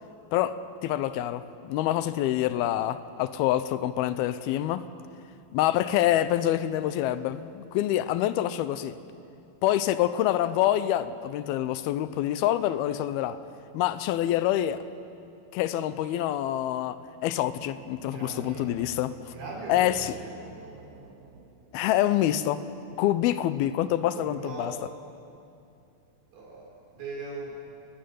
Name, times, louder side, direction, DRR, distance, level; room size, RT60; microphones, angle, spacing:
voice 1, 0.3-4.9 5.5-9.0 9.6-13.4 13.7-14.8 15.5-19.2 19.7-20.2 21.7-22.6 23.0-24.7, left 12 dB, 85° left, 13 dB, 2.7 m, -26 dB
sound 1, 17.3-22.0, right 4 dB, 60° right, 2.4 m, -49 dB
voice 2, 18.1-18.7 19.3-20.3 24.1-24.8 26.3-27.6, right 3 dB, 85° right, -2 dB, 6.0 m, -40 dB
29.0 x 12.5 x 9.2 m, 2.6 s
omnidirectional pair, 4.3 m